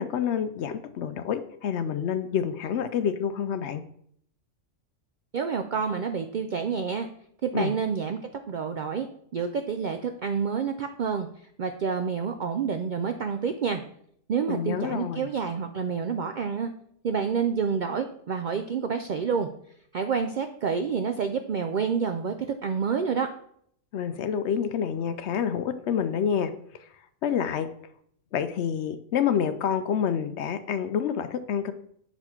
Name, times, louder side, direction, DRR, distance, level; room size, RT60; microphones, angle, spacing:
voice 1, 0.0-3.8 7.5-7.7 14.5-15.2 23.9-26.5 27.2-27.7 28.3-31.7, left 8 dB, 70° left, 10 dB, 0.8 m, -28 dB
voice 2, 5.3-7.1 7.4-8.2 8.5-9.1 9.3-11.3 11.6-13.8 14.3-16.7 17.0-19.5 19.9-23.3, right 6 dB, 70° right, 7 dB, 0.4 m, -28 dB
6.8 x 4.3 x 4.4 m, 0.66 s
omnidirectional pair, 1.3 m